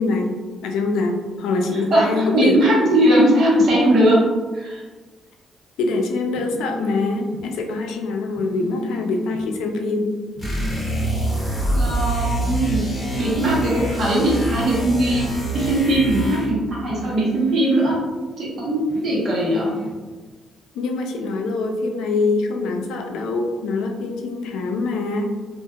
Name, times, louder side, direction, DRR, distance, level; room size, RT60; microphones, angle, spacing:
voice 1, 0.0-2.6 5.8-10.1 20.7-25.3, left 3 dB, 90° left, 3 dB, 0.3 m, -24 dB
voice 2, 1.7-4.2 4.5-4.8 11.7-12.8 13.2-18.0 18.4-19.7, right 1 dB, 65° right, -6 dB, 1.1 m, -19 dB
sound 1, 6.3-7.4 8.3-9.4 10.3-11.4 12.9-13.9 14.9-15.9 16.9-17.9 18.9-19.9, equal, 20° right, 1.2 m, -35 dB
sound 2, 10.4-16.6, right 1 dB, 20° left, 1.1 m, -25 dB
2.7 x 2.4 x 2.3 m, 1.3 s
cardioid pair, 90°, 0 cm